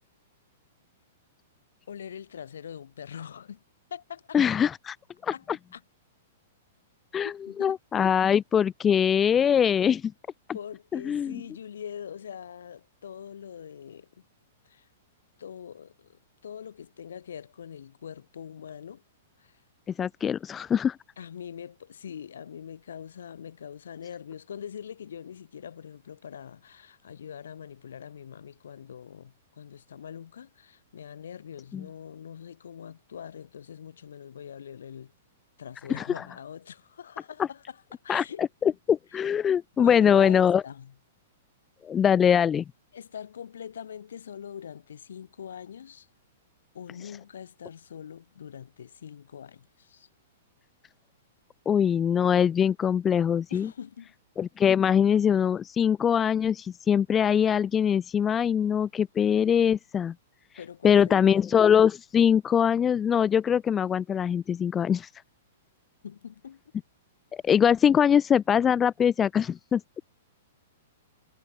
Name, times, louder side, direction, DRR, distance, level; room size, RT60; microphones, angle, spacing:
voice 1, 1.9-3.6 3.9-4.4 5.3-5.5 5.7-5.8 7.2-7.8 10.5-14.3 14.6-14.9 15.4-19.0 19.4-19.6 21.2-35.1 35.6-38.8 39.1-39.2 39.8-40.9 42.9-46.1 46.7-50.1 53.5-54.1 60.6-61.4 66.0-66.6, left 8 dB, 85° left, 5.7 m, -43 dB
voice 2, 4.3-4.9 5.2-5.3 7.1-7.3 7.6-10.1 10.9-11.4 20.0-21.0 31.7-31.8 36.0-36.1 38.1-40.6 41.8-42.6 51.7-53.7 54.4-60.1 60.8-65.1 67.4-69.8, left 8 dB, 15° left, 0.5 m, -22 dB
hypercardioid pair, 145°, 0 cm